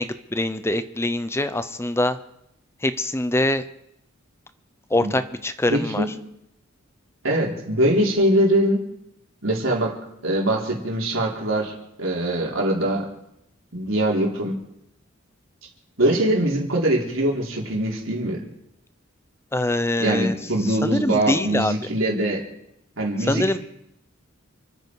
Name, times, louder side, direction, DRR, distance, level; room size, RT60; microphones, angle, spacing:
voice 1, 0.0-2.2 2.8-3.6 4.9-6.0 19.5-20.3 20.8-21.7 23.3-23.6, left 1 dB, 15° left, 12 dB, 0.8 m, -23 dB
voice 2, 5.7-6.1 7.2-8.8 9.4-9.9 10.2-11.7 12.0-13.1 13.7-14.6 16.0-18.4 20.0-22.4 23.0-23.6, right 1 dB, 70° right, -2 dB, 4.4 m, -22 dB
29.5 x 9.9 x 4.9 m, 0.78 s
head